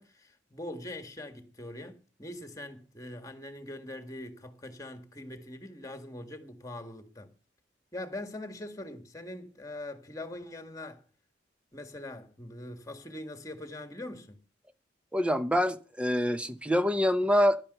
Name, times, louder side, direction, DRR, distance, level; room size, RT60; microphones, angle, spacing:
voice 1, 0.0-7.4 7.9-11.0 11.7-14.4, left 1 dB, 20° left, 1.8 m, -42 dB
voice 2, 15.1-17.6, equal, 5° right, 0.7 m, -25 dB
11.0 x 10.5 x 6.7 m
head